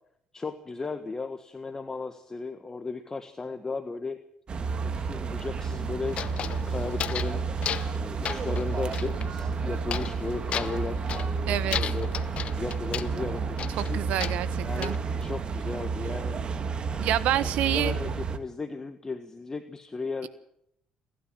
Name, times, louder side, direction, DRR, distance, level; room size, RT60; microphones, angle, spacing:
voice 1, 0.3-4.2 4.8-7.4 7.9-12.1 12.5-14.0 14.6-16.4 17.4-20.3, left 3 dB, 25° left, 8 dB, 1.5 m, -36 dB
sound 1, 4.5-18.4, right 5 dB, 45° right, 1.9 m, -31 dB
sound 2, 6.1-7.4 7.6-8.0 8.2-9.3 9.9-10.2 10.5-11.3 11.7-13.1 13.6-15.0, left 9 dB, 55° left, 0.9 m, -34 dB
voice 2, 11.5-11.8 13.8-14.9 17.0-17.9, right 12 dB, 75° right, 14 dB, 1.4 m, -28 dB
30.0 x 12.0 x 7.5 m, 0.73 s
supercardioid pair, 70°, 2 cm